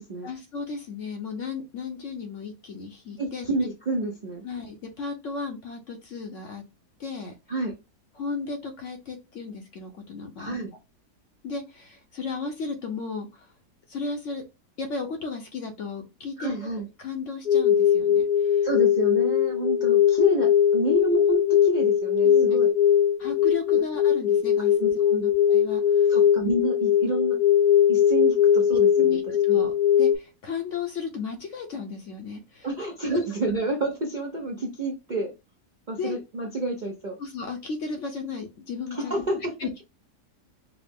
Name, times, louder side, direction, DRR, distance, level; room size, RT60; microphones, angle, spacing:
voice 1, 0.2-3.5 4.4-6.6 7.0-7.3 8.1-10.6 11.4-13.5 13.9-14.4 14.8-16.6 17.0-18.7 22.2-22.5 23.2-24.8 25.1-26.2 29.0-32.7 33.1-33.2 36.0-36.2 37.2-39.2 39.6-39.8, left 5 dB, 60° left, 4 dB, 0.9 m, -35 dB
voice 2, 3.2-4.4 7.5-7.7 10.4-10.7 16.4-16.9 18.6-22.7 23.7-23.8 24.8-25.2 26.1-27.4 27.9-29.2 29.5-29.6 32.6-35.3 35.9-37.2 38.9-39.4, right 2 dB, 50° right, 0 dB, 0.5 m, -29 dB
sound 1, 17.5-30.2, left 9 dB, 80° left, 1.5 m, -20 dB
4.8 x 2.0 x 3.5 m, 0.26 s
omnidirectional pair, 1.8 m